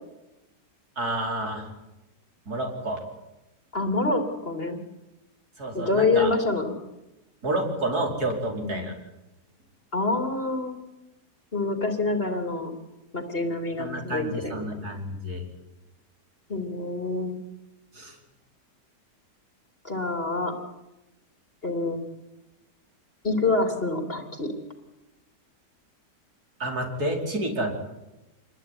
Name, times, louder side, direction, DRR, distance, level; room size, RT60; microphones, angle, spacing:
voice 1, 1.0-1.7 2.5-3.0 5.6-6.3 7.4-8.9 13.8-15.4 17.9-18.2 26.6-27.7, right 1 dB, 65° right, 1 dB, 5.3 m, -29 dB
voice 2, 3.7-4.8 5.7-6.7 8.6-8.9 9.9-10.8 11.5-12.7 13.1-15.0 16.5-17.4 19.8-20.5 21.6-22.0 23.2-24.5, left 3 dB, 35° left, 5 dB, 3.3 m, -26 dB
27.5 x 21.0 x 9.9 m, 0.99 s
omnidirectional pair, 1.8 m